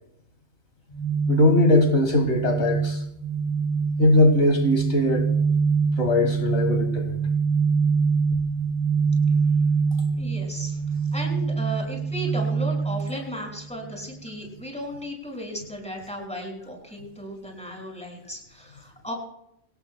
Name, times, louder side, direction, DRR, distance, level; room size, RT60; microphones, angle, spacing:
sound 1, 0.9-14.0, right 5 dB, 25° left, 4.9 m, -24 dB
voice 1, 1.3-3.0 4.0-5.3 6.0-7.2, left 2 dB, 70° left, 4 dB, 1.9 m, -20 dB
voice 2, 10.2-10.8 11.1-19.1, equal, 5° left, 0 dB, 5.6 m, -35 dB
25.0 x 17.5 x 2.2 m, 0.75 s
omnidirectional pair, 1.2 m